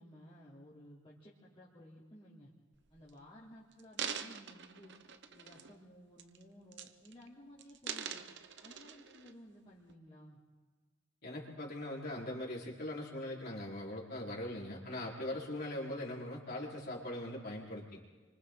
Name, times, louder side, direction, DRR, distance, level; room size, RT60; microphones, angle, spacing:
voice 1, 0.0-2.5 2.9-5.0 5.3-8.2 8.6-10.4, equal, 30° left, -9 dB, 3.5 m, -56 dB
sound 1, 2.7-3.1 3.7-5.8 6.2-6.4 6.7-7.3 7.6-9.3 9.9-10.0, right 7 dB, 60° right, 0.9 m, -44 dB
voice 2, 11.2-18.0, left 1 dB, 50° left, -3 dB, 4.4 m, -41 dB
29.5 x 25.5 x 3.9 m, 1.4 s
head